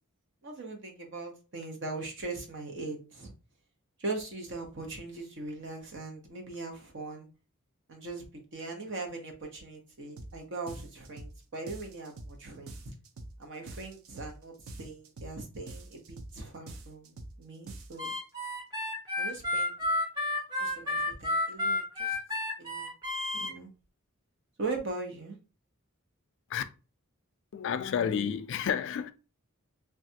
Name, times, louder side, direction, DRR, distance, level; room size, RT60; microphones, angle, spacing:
voice 1, 0.4-3.3 4.0-7.3 7.9-12.9 13.4-18.1 19.2-19.7 20.6-22.2 22.6-22.9 23.4-23.7 24.6-25.4, right 3 dB, 55° right, 0.8 m, -40 dB
sound 1, 10.2-10.4 10.7-11.4 11.7-12.4 12.7-13.4 13.7-14.4 14.7-15.4 15.7-16.4 16.7-17.4 17.7-18.1, right 2 dB, 75° right, 0.5 m, -45 dB
Harmonica, 18.0-23.5, left 2 dB, 20° right, 0.8 m, -31 dB
voice 2, 27.5-29.1, left 8 dB, 60° left, 0.3 m, -30 dB
3.2 x 2.3 x 2.7 m
head